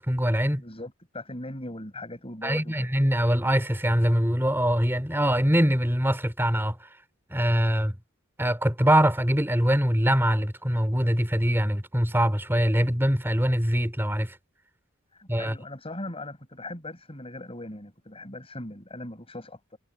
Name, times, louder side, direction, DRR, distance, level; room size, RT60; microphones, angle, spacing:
voice 1, 0.0-0.6 2.4-6.9 7.3-8.0 8.4-14.4 15.3-15.6, equal, 10° right, 3.6 m, -23 dB
voice 2, 0.5-2.9 15.1-19.8, left 1 dB, 25° left, 6.5 m, -39 dB
head